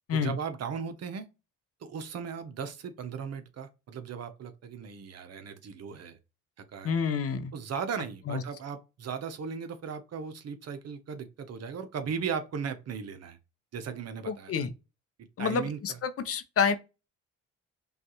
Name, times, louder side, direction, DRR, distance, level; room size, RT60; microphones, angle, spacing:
voice 1, 0.1-1.3 1.8-6.2 6.6-7.0 7.5-13.4 13.7-14.7 15.4-16.0, right 6 dB, 55° right, 0.8 m, -37 dB
voice 2, 6.8-7.5 8.3-8.4 14.3-14.7 15.4-16.7, left 6 dB, 50° left, 0.7 m, -28 dB
5.3 x 2.4 x 3.0 m
cardioid pair, 90°, 30 cm